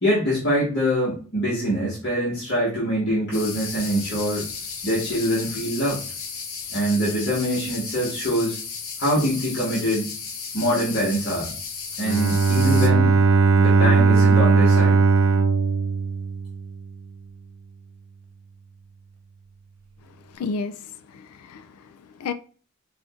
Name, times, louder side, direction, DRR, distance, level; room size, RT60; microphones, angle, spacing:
voice 1, 0.0-4.5 4.8-6.0 6.7-8.6 9.0-10.1 10.5-11.5 12.0-13.1 13.6-15.0, equal, 50° left, 1.4 m, -24 dB
sound 1, 3.3-12.9, left 5 dB, 70° left, 0.8 m, -34 dB
Bowed string instrument, 12.0-16.8, right 4 dB, 60° right, 0.4 m, -18 dB
voice 2, 20.2-22.3, left 4 dB, 90° left, 0.3 m, -33 dB
4.9 x 2.6 x 2.4 m
head